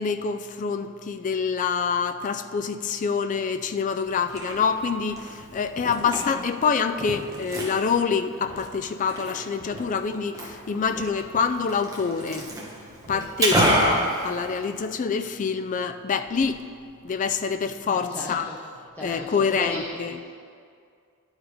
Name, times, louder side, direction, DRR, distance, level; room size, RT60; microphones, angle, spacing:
voice 1, 0.0-12.5 13.1-16.6 17.0-18.5 19.0-20.2, left 5 dB, 35° left, 9 dB, 0.3 m, -26 dB
Liquid, 4.0-15.0, right 1 dB, 15° right, 1.2 m, -30 dB
voice 2, 17.9-18.6 19.0-19.8 20.2-20.3, equal, 10° left, -6 dB, 0.7 m, -37 dB
11.5 x 4.8 x 5.0 m, 2.3 s
head